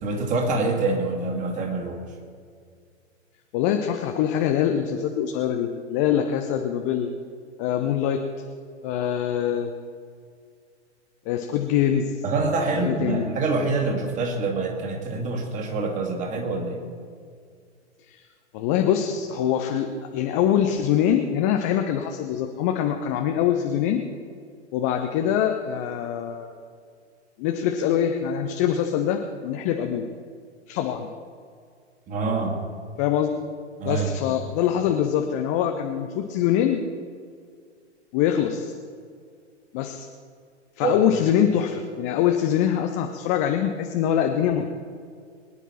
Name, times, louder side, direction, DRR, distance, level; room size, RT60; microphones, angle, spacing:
voice 1, 0.0-2.0 12.2-16.8 32.1-32.6 33.8-34.4 40.8-41.0, right 3 dB, 20° right, 3 dB, 2.1 m, -26 dB
voice 2, 3.5-7.1 7.6-8.2 8.8-9.7 11.3-12.1 12.8-13.3 18.1-18.2 18.5-24.0 24.7-26.5 27.4-30.1 30.7-31.1 33.0-33.3 33.8-36.8 38.1-38.7 39.7-40.1 40.8-44.7, left 9 dB, 15° left, 5 dB, 0.4 m, -24 dB
22.5 x 9.9 x 4.4 m, 2.2 s
figure-of-eight pair, 110°, 35 cm